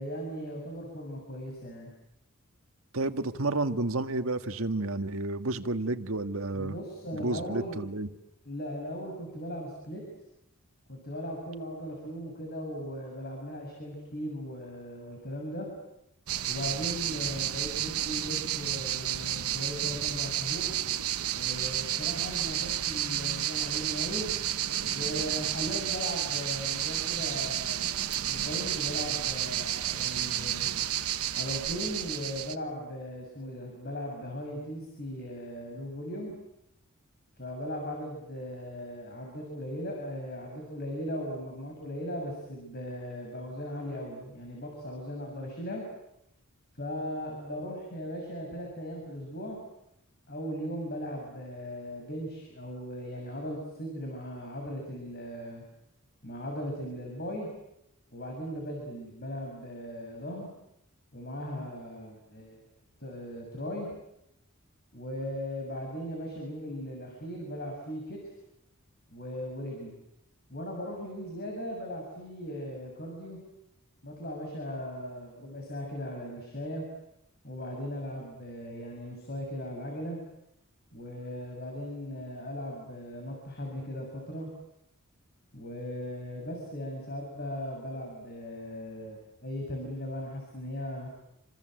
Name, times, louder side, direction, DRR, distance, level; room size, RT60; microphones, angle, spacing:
voice 1, 0.0-1.9 6.5-7.8 8.4-10.0 10.9-15.7 16.5-20.7 21.3-24.3 24.9-28.0 28.3-30.7 31.3-36.3 37.4-45.8 46.8-49.6 50.3-55.6 56.2-57.5 58.1-60.5 61.1-62.6 63.0-63.9 64.9-68.2 69.1-70.0 70.5-73.4 74.0-76.8 77.4-80.2 80.9-84.5 85.5-91.1, equal, 45° left, 0 dB, 6.9 m, -38 dB
voice 2, 2.9-6.8 7.1-8.1, right 2 dB, 65° right, 8 dB, 1.6 m, -31 dB
sound 1, 16.3-32.6, right 11 dB, 85° right, 1.1 m, -31 dB
28.5 x 26.0 x 7.8 m, 0.82 s
head